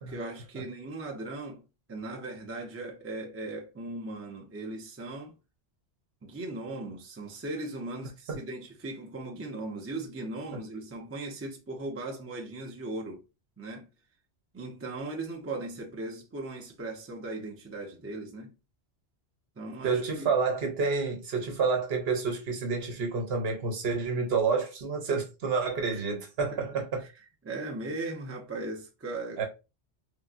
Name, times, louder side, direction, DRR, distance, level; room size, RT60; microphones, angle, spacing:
voice 1, 0.1-5.3 6.2-13.2 13.6-13.9 14.5-18.5 19.6-20.3 25.9-26.0 26.5-26.6 27.0-27.1 27.4-29.4, right 2 dB, 25° right, 0.3 m, -38 dB
voice 2, 19.8-27.1 29.4-29.5, right 4 dB, 65° right, 1.0 m, -29 dB
3.6 x 2.0 x 2.4 m
omnidirectional pair, 1.2 m